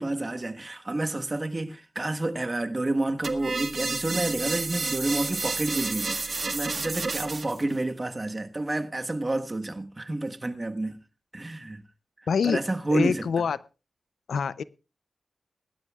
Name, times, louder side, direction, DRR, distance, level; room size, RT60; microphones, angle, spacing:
voice 1, 0.0-11.0 11.3-11.8 12.4-13.3, right 2 dB, 30° right, 1.4 m, -29 dB
sound 1, 3.2-7.6, right 3 dB, 55° right, 1.6 m, -30 dB
voice 2, 12.3-12.6 12.9-13.6 14.3-14.6, left 6 dB, 90° left, 0.5 m, -25 dB
22.0 x 12.0 x 2.4 m
cardioid pair, 70°, 0 cm